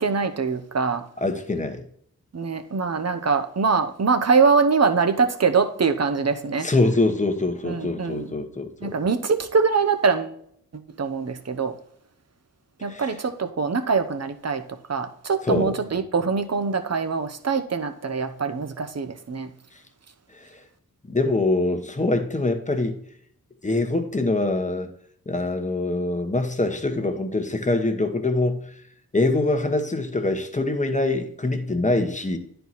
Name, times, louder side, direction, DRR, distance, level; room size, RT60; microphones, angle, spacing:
voice 1, 0.0-1.0 2.3-6.7 7.6-8.3 8.8-10.4 10.7-11.7 12.8-19.5, right 5 dB, 45° right, 8 dB, 0.8 m, -23 dB
voice 2, 1.2-1.8 6.6-8.9 12.9-13.1 15.5-15.8 20.3-20.6 21.1-23.0 23.6-24.9 25.3-28.7 29.1-32.4, left 2 dB, 20° left, 6 dB, 1.0 m, -24 dB
10.0 x 4.5 x 4.1 m, 0.67 s
cardioid pair, 55°, 36 cm